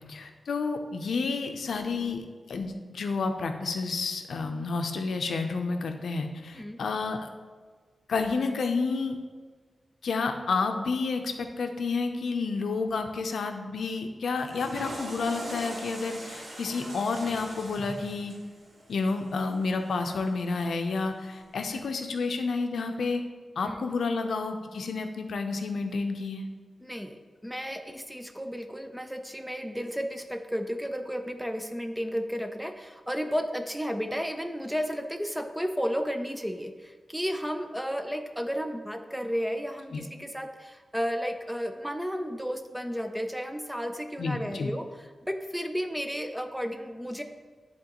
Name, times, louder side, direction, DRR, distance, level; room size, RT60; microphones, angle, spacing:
voice 1, 0.1-2.2 2.5-7.3 8.1-9.2 10.0-18.3 18.9-23.2 23.6-26.5 39.9-40.0 44.2-44.7, left 4 dB, 85° left, 5 dB, 0.5 m, -30 dB
Water / Toilet flush, 14.3-20.6, right 1 dB, 60° right, 1.6 m, -42 dB
voice 2, 26.8-27.2 27.4-44.8 45.2-47.2, equal, ahead, 6 dB, 0.4 m, -33 dB
10.0 x 3.6 x 3.0 m, 1.5 s
wide cardioid pair, 170°, 0 cm